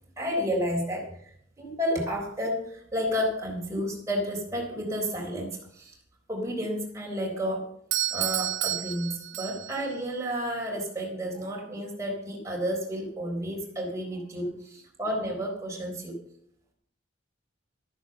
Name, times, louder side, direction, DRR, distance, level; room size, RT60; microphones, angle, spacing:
voice 1, 0.2-6.0 6.3-7.6 8.1-16.2, equal, 15° right, -2 dB, 4.0 m, -31 dB
Doorbell, 7.9-9.9, right 14 dB, 70° right, 0.7 m, -30 dB
12.5 x 10.0 x 6.9 m, 0.67 s
head